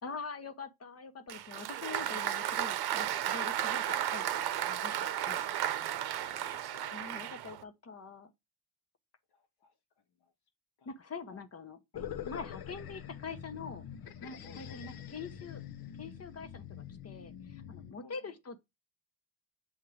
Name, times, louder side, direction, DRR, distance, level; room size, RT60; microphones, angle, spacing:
voice 1, 0.0-5.6 5.9-6.3 6.9-8.3 10.8-13.9 14.2-15.6 16.0-18.6, left 5 dB, 40° left, 1.0 m, -45 dB
Applause, 1.3-7.6, right 11 dB, 75° right, 0.7 m, -34 dB
voice 2, 5.8-7.0 9.3-9.7 10.2-10.3 10.8-10.9 11.3-11.4 12.4-12.5 14.4-14.8 18.0-18.3, left 4 dB, 90° left, 1.7 m, -58 dB
sound 1, 11.9-17.9, left 9 dB, 65° left, 0.7 m, -45 dB
7.2 x 2.8 x 4.8 m
cardioid pair, 100°, 38 cm